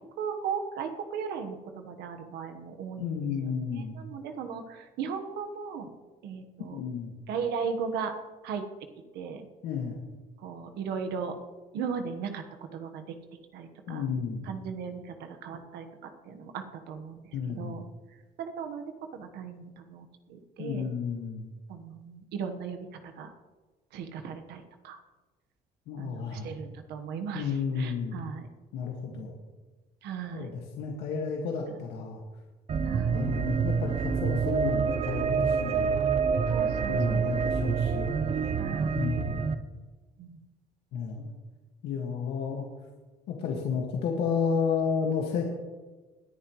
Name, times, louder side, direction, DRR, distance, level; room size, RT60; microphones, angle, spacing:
voice 1, 0.2-5.9 6.2-6.8 7.3-8.1 8.4-8.6 9.1-9.5 10.4-11.3 11.7-12.4 12.7-13.0 13.5-14.0 14.5-15.9 16.2-17.8 18.4-18.8 19.1-20.9 21.7-23.3 23.9-25.0 26.0-28.5 29.1-29.3 30.0-30.5 32.8-33.2 36.5-37.4 38.6-39.0 40.2-40.4, right 6 dB, 80° right, 6 dB, 1.3 m, -37 dB
voice 2, 3.0-4.0 6.7-7.1 9.6-10.0 13.9-14.5 17.3-17.7 20.6-21.5 25.9-26.5 27.3-28.2 28.7-29.3 30.3-32.2 33.1-36.0 36.9-38.2 39.0-39.5 40.9-41.3 41.8-42.7 43.3-45.4, left 6 dB, 85° left, -1 dB, 1.9 m, -32 dB
sound 1, 32.7-39.5, right 6 dB, 40° right, 0.7 m, -27 dB
20.5 x 10.0 x 3.2 m, 1.2 s
cardioid pair, 110°, 17 cm